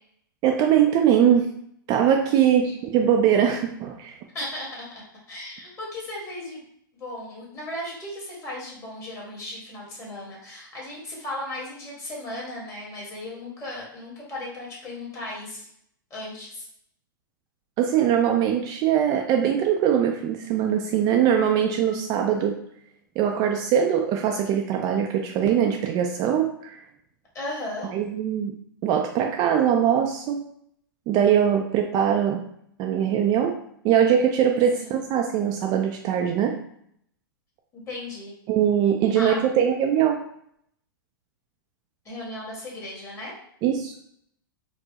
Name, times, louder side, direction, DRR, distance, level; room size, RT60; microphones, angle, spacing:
voice 1, 0.4-1.5 1.9-4.1 17.8-22.5 23.2-26.8 27.9-28.5 28.8-30.4 31.1-32.4 32.8-33.5 33.8-36.5 38.5-40.2 43.6-43.9, right 9 dB, 35° right, 2 dB, 0.3 m, -21 dB
voice 2, 4.3-4.8 5.3-6.6 6.9-15.7 16.1-16.7 27.3-27.9 34.8-35.0 37.7-38.3 39.1-39.4 42.0-43.3, left 1 dB, 25° left, -4 dB, 1.4 m, -36 dB
4.4 x 2.0 x 2.8 m, 0.68 s
hypercardioid pair, 125°, 12 cm